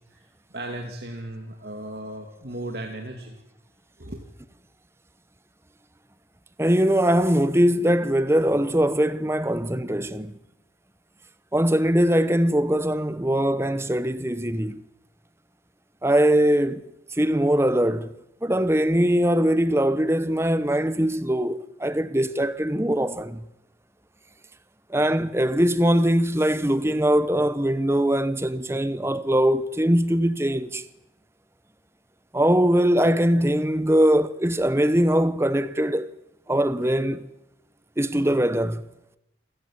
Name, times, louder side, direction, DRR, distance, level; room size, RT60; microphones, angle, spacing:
voice 1, 0.5-3.4 4.0-4.2, right 1 dB, 60° right, 2.6 m, -36 dB
voice 2, 6.6-10.3 11.5-14.8 16.0-16.8 17.1-18.1 18.4-23.4 24.9-30.8 32.3-36.1 36.5-37.3 38.0-38.8, equal, 15° right, 0.9 m, -21 dB
28.0 x 15.0 x 9.8 m
head